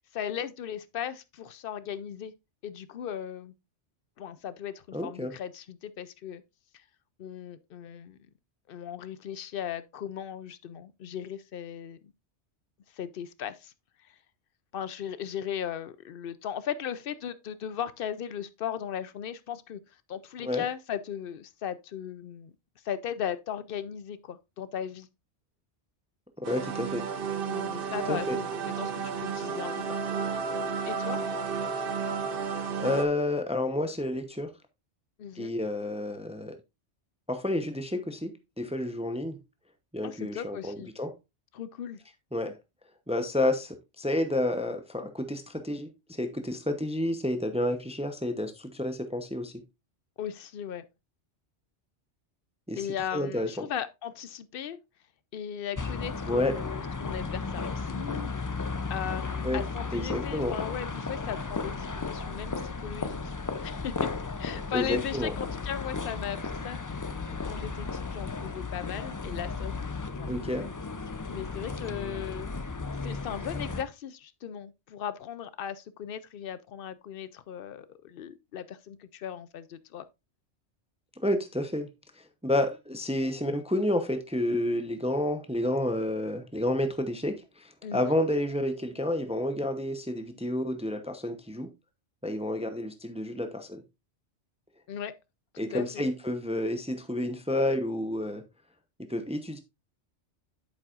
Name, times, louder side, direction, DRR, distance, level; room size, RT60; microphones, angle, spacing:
voice 1, 0.0-2.3 2.6-3.5 4.2-6.4 6.7-6.8 7.2-8.2 8.7-12.1 12.9-13.7 14.0-14.2 14.7-22.5 22.8-25.1 27.5-30.0 30.9-31.2 35.2-35.5 40.0-40.9 41.5-42.0 50.2-50.9 52.8-54.8 55.3-58.5 58.9-63.3 63.6-64.1 64.4-69.7 70.1-70.7 71.3-72.5 73.0-80.1 87.8-88.1 94.9-95.2 95.5-96.1, left 9 dB, 60° left, 0.7 m, -37 dB
voice 2, 4.9-5.3 20.4-20.6 26.5-27.1 28.1-28.4 32.8-34.5 35.4-36.6 37.3-39.4 39.9-41.1 42.3-42.5 43.1-49.5 52.7-53.7 56.3-56.5 59.4-59.6 59.9-60.6 64.7-65.3 70.3-70.7 81.2-81.9 82.4-91.7 92.2-93.8 95.6-98.4 99.1-99.6, left 1 dB, 5° right, 0.7 m, -30 dB
sound 1, 26.4-33.1, right 5 dB, 55° right, 1.0 m, -32 dB
sound 2, 55.8-73.8, left 4 dB, 30° left, 0.3 m, -35 dB
8.6 x 7.3 x 2.5 m
omnidirectional pair, 1.2 m